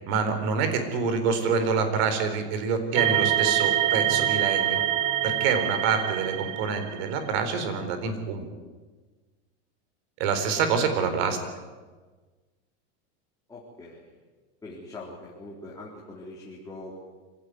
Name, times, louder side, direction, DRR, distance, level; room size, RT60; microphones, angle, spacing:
voice 1, 0.1-4.8 5.2-8.4 10.2-11.4, right 5 dB, 55° right, 8 dB, 4.3 m, -26 dB
sound 1, 2.9-7.2, right 11 dB, 20° right, 0.8 m, -25 dB
voice 2, 13.5-14.1 14.6-17.0, left 2 dB, 10° left, -5 dB, 3.5 m, -42 dB
25.5 x 17.0 x 9.5 m, 1.4 s
supercardioid pair, 160°, 36 cm